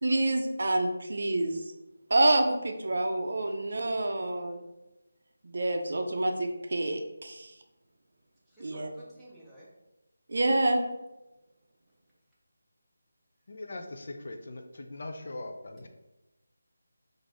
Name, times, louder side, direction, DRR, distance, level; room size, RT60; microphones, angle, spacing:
voice 1, 0.0-1.6 2.1-4.6 5.4-7.5 8.6-8.9 10.3-10.8, right 2 dB, 55° right, 4 dB, 0.5 m, -27 dB
voice 2, 8.5-9.7, right 1 dB, ahead, -12 dB, 0.6 m, -52 dB
voice 3, 13.5-15.9, left 2 dB, 45° left, 5 dB, 0.4 m, -41 dB
5.0 x 2.6 x 3.7 m, 1.0 s
figure-of-eight pair, 175°, 0 cm